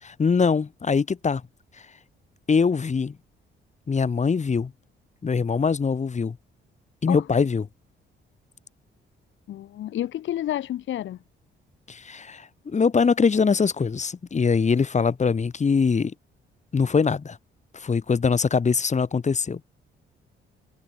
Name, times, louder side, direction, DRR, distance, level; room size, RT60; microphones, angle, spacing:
voice 1, 0.0-1.4 2.5-3.1 3.9-4.7 5.2-6.4 7.0-7.6 11.9-16.1 16.7-17.4 17.7-19.6, left 5 dB, 35° left, 5.0 m, -22 dB
voice 2, 9.5-11.2, left 12 dB, 75° left, 1.9 m, -30 dB
cardioid pair, 90°, 20 cm